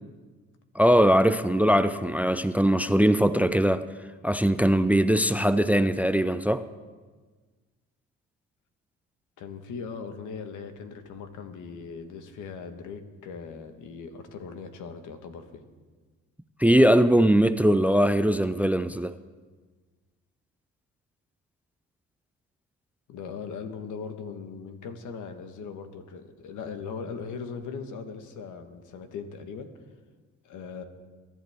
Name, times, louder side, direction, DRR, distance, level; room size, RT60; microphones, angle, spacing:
voice 1, 0.8-3.9 4.2-6.7 16.6-19.2, equal, 5° right, 0.4 m, -21 dB
voice 2, 9.4-15.6 23.1-29.7 30.4-30.8, left 5 dB, 80° left, 1.4 m, -39 dB
22.5 x 10.5 x 3.6 m
cardioid pair, 90°, 30 cm